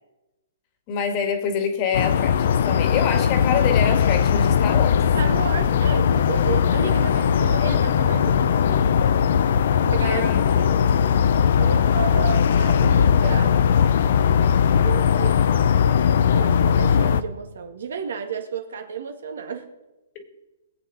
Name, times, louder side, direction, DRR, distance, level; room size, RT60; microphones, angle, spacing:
voice 1, 0.9-5.0 10.0-10.6 20.1-20.2, left 7 dB, 25° left, 7 dB, 1.6 m, -26 dB
sound 1, 1.9-17.2, left 7 dB, 55° left, 0.6 m, -19 dB
voice 2, 5.0-8.8 9.7-10.2 10.6-10.7 11.6-13.7 14.8-15.9 16.3-19.7, right 6 dB, 75° right, 6 dB, 1.7 m, -32 dB
22.5 x 8.3 x 4.0 m, 1.1 s
hypercardioid pair, 165°, 0 cm